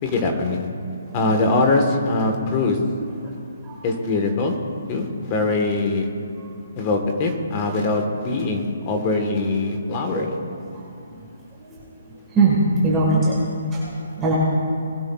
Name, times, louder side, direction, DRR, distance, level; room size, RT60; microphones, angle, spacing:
voice 1, 0.0-0.7 1.1-2.8 3.8-4.6 4.9-6.1 6.8-10.4, left 3 dB, 25° left, 3 dB, 1.2 m, -22 dB
voice 2, 10.0-10.3 12.3-13.4 13.7-13.8 14.2-14.3, right 3 dB, 10° right, -6 dB, 1.6 m, -19 dB
20.0 x 12.5 x 2.3 m, 2.5 s
hypercardioid pair, 170°, 0 cm